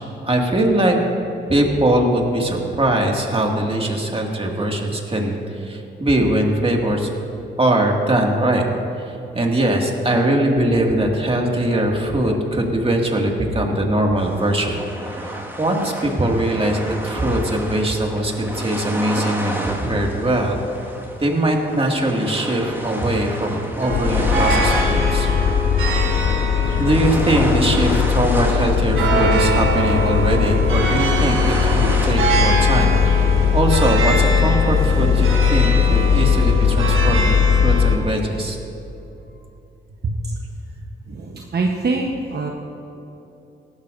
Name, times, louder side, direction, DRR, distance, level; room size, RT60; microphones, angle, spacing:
voice 1, 0.2-1.0 1.5-5.4 5.6-7.1 7.6-8.7 9.3-14.8 15.2-20.6 21.2-25.3 26.8-38.6, right 1 dB, 25° right, 1 dB, 2.1 m, -21 dB
sound 1, 14.2-32.1, equal, 10° right, 1.8 m, -31 dB
sound 2, 23.8-38.0, right 3 dB, 75° right, 1.6 m, -24 dB
sound 3, 23.9-38.0, left 8 dB, 50° left, 0.4 m, -19 dB
voice 2, 40.0-40.3 41.1-42.5, right 3 dB, 50° right, 0 dB, 1.0 m, -24 dB
17.5 x 12.5 x 2.6 m, 2.9 s
supercardioid pair, 55°, 21 cm